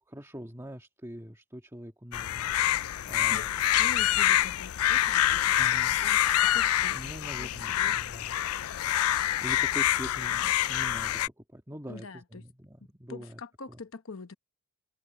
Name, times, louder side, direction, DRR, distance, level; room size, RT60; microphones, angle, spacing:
voice 1, 0.0-2.5 3.0-3.7 5.6-6.0 6.9-8.3 9.4-13.4, equal, 15° right, 1.9 m, -43 dB
sound 1, 2.1-11.3, left 12 dB, 85° left, 0.4 m, -26 dB
voice 2, 3.3-8.0 11.9-12.5 13.1-14.3, left 4 dB, 65° left, 1.0 m, -45 dB
head